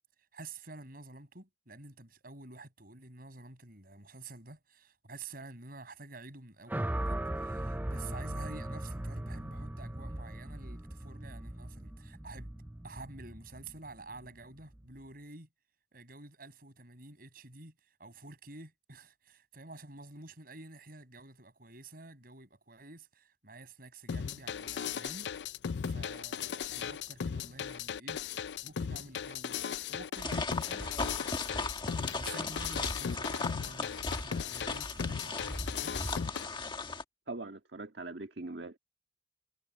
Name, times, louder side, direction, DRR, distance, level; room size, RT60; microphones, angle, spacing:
voice 1, 0.3-12.5 12.8-15.5 15.9-17.7 18.0-25.3 25.9-28.2 28.6-36.0, right 2 dB, 55° right, 7.0 m, -50 dB
sound 1, 6.7-15.0, right 1 dB, 10° right, 0.5 m, -39 dB
sound 2, 24.1-36.4, left 7 dB, 75° left, 0.4 m, -37 dB
sound 3, 30.2-37.0, left 3 dB, 25° left, 1.5 m, -37 dB
voice 2, 37.3-38.8, right 2 dB, 70° right, 1.8 m, -41 dB
head